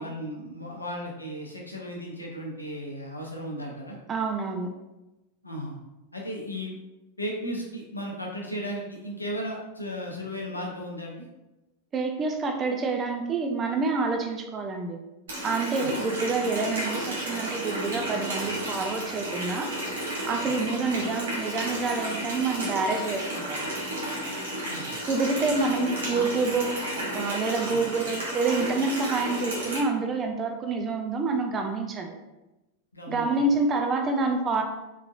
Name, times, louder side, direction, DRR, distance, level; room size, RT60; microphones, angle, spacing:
voice 1, 0.0-4.0 5.4-5.8 6.1-6.7 7.2-11.2 15.8-15.9 20.4-20.5 24.7-25.0 25.6-25.7 27.7-27.8 32.9-33.3, equal, 85° left, -1 dB, 0.7 m, -35 dB
voice 2, 4.1-4.7 11.9-15.0 15.4-19.7 20.2-23.6 25.1-26.8 27.1-32.1 33.1-34.6, right 3 dB, 25° right, 4 dB, 0.4 m, -27 dB
Water tap faucet, 15.3-29.8, right 1 dB, 65° right, 1.1 m, -32 dB
3.5 x 3.2 x 2.4 m, 1.0 s
figure-of-eight pair, 90°, 0 cm